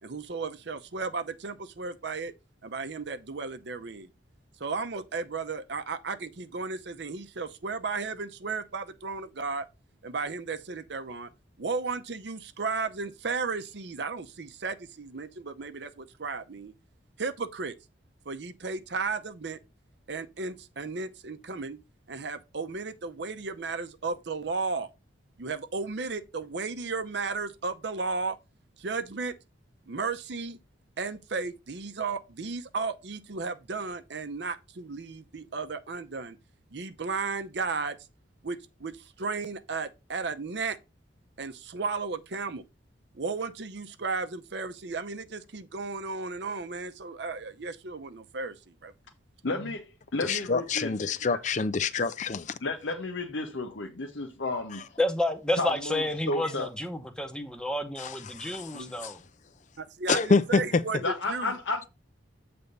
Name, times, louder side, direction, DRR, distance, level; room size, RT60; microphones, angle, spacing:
voice 1, 0.0-2.3 2.6-4.1 4.6-9.7 10.0-11.3 11.6-16.7 17.2-17.7 18.3-19.6 20.1-21.8 22.1-24.9 25.4-28.4 28.8-29.3 29.9-30.6 31.0-36.4 36.7-38.0 38.4-40.8 41.4-42.6 43.1-48.9 58.7-58.9 59.8-61.5, right 4 dB, 60° right, 0.6 m, -34 dB
voice 2, 49.4-49.8 50.1-50.9 52.6-54.8 55.6-56.7 61.0-61.9, left 2 dB, 75° left, 0.9 m, -32 dB
voice 3, 50.2-52.6 54.7-54.8 58.0-59.2 60.1-60.8, left 4 dB, 40° left, 0.4 m, -27 dB
voice 4, 55.0-59.2, left 1 dB, 5° left, 0.8 m, -30 dB
8.0 x 3.4 x 5.3 m
head